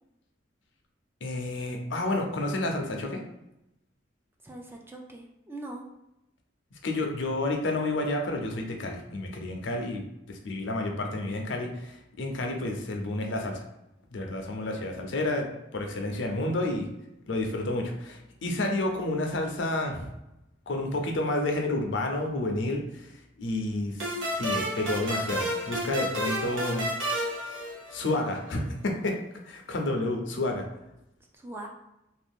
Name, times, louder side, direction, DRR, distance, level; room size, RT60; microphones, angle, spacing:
voice 1, 1.2-3.2 6.8-10.0 10.3-13.6 14.1-15.5 15.7-16.9 17.3-20.1 20.7-23.1 23.4-26.9 27.9-29.2 29.5-30.7, left 2 dB, 75° left, 2 dB, 0.6 m, -30 dB
voice 2, 4.4-5.9 31.3-31.7, right 2 dB, 10° right, 0 dB, 0.4 m, -41 dB
sound 1, 24.0-28.4, equal, 80° right, 0.9 m, -31 dB
2.6 x 2.4 x 3.5 m, 0.88 s
head